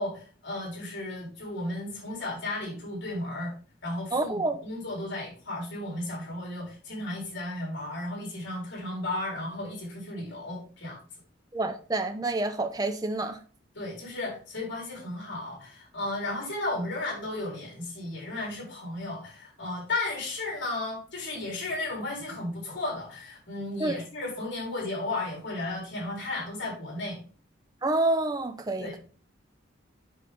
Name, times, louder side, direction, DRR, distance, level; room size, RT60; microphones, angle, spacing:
voice 1, 0.0-3.5 3.8-11.0 13.7-27.2 28.8-28.9, left 2 dB, 75° left, 3.8 m, -34 dB
voice 2, 4.1-4.6 11.5-13.4 23.8-24.0 27.8-29.0, right 2 dB, 20° right, 0.5 m, -28 dB
7.6 x 5.3 x 3.5 m
head